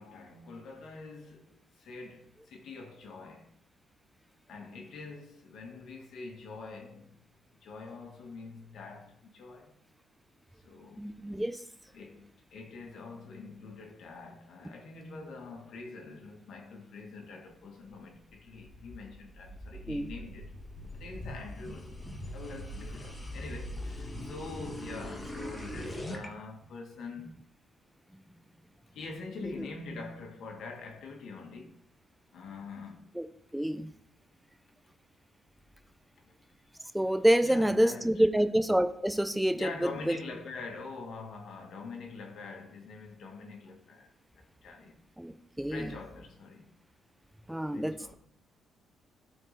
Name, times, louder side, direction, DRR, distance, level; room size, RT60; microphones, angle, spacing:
voice 1, 0.0-3.5 4.5-7.2 7.6-9.7 10.6-11.2 11.9-20.5 20.9-22.0 22.3-27.3 28.9-31.7 32.3-33.0 36.2-36.3 37.4-38.5 39.5-45.0 45.7-46.7 47.7-48.1, left 4 dB, 70° left, 1.6 m, -45 dB
voice 2, 11.0-11.6 19.9-20.1 29.4-29.5 33.2-33.3 33.5-33.9 36.9-40.2 45.2-45.9 47.5-48.1, right 1 dB, 5° right, 0.5 m, -27 dB
sound 1, 18.2-26.3, left 1 dB, 25° left, 1.5 m, -41 dB
12.5 x 4.4 x 3.3 m
cardioid pair, 90°, 0 cm